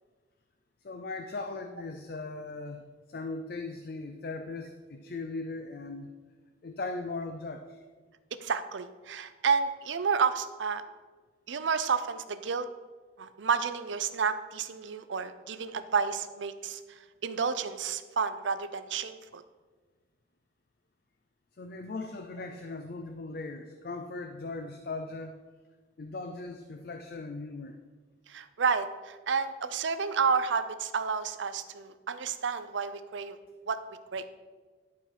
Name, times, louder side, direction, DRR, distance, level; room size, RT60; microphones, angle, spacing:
voice 1, 0.8-6.1 6.6-7.8 21.6-25.3 26.0-27.8, left 3 dB, 55° left, 6 dB, 0.5 m, -39 dB
voice 2, 8.4-10.8 11.5-12.7 13.2-19.4 28.3-33.4 33.7-33.8 34.1-34.3, right 5 dB, 85° right, 11 dB, 0.6 m, -30 dB
11.0 x 4.5 x 4.9 m, 1.4 s
head